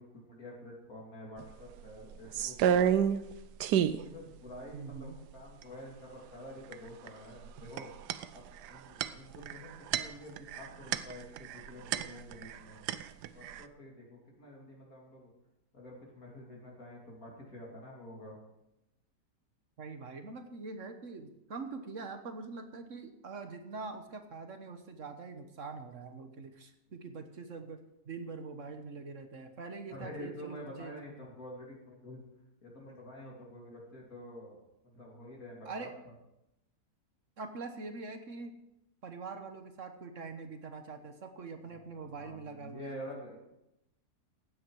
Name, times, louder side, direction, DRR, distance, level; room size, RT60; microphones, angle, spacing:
voice 1, 0.0-2.9 4.0-7.9 8.3-12.8 13.3-15.3 15.7-18.4 29.9-32.2 32.6-35.9 41.7-43.4, left 1 dB, 60° left, -2 dB, 3.4 m, -48 dB
sound 1, 1.4-1.5 1.8-3.3 3.6-4.0 4.6-4.7 4.9-5.6 6.7-7.1 7.4-12.6 12.9-13.6, right 9 dB, 90° right, 1.3 m, -30 dB
voice 2, 4.7-5.2 19.8-30.9 35.6-35.9 37.4-38.6 39.0-43.0, right 4 dB, 50° right, 7 dB, 1.5 m, -44 dB
16.0 x 9.7 x 4.8 m, 0.87 s
omnidirectional pair, 1.7 m